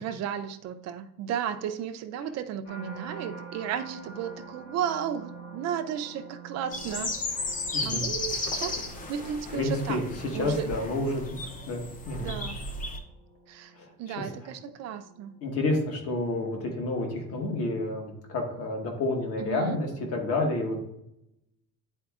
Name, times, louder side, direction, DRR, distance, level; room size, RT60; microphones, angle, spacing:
voice 1, 0.0-7.2 7.8-8.8 9.1-10.7 12.2-12.7 13.5-13.7 14.0-15.4 19.4-19.8, right 9 dB, 50° right, 7 dB, 0.5 m, -34 dB
sound 1, 2.6-17.8 18.4-18.8, right 4 dB, 75° left, 2.1 m, -48 dB
sound 2, 6.7-13.0, left 2 dB, 25° left, 0.5 m, -34 dB
voice 2, 9.5-11.4 11.7-12.3 13.8-13.9 14.2-14.5 15.4-20.9, left 2 dB, 40° left, 2 dB, 1.3 m, -30 dB
10.0 x 4.3 x 2.4 m, 0.83 s
cardioid pair, 175°, 35 cm